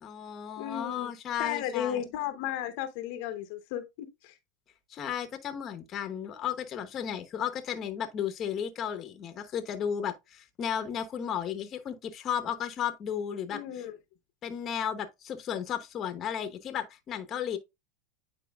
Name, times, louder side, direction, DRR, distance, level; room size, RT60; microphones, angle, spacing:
voice 1, 0.0-2.0 4.9-13.6 14.4-17.6, left 8 dB, 35° left, 1.0 m, -34 dB
voice 2, 0.6-1.1 1.4-4.4 13.5-14.0, left 11 dB, 60° left, 0.8 m, -34 dB
9.3 x 4.4 x 2.3 m
supercardioid pair, 120°, 0 cm